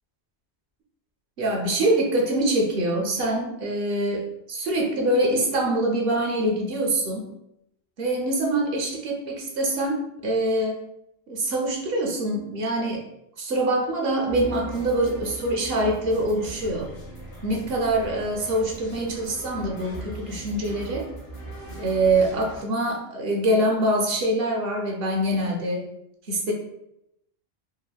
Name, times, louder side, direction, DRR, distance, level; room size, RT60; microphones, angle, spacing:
voice 1, 1.4-7.3 8.0-10.8 11.3-13.0 13.4-16.9 17.4-21.1 21.8-25.8 26.3-26.5, right 1 dB, 65° right, 0 dB, 0.8 m, -24 dB
sound 1, 14.3-22.6, right 2 dB, 70° left, 1.0 m, -39 dB
3.3 x 2.0 x 2.2 m, 0.82 s
omnidirectional pair, 1.1 m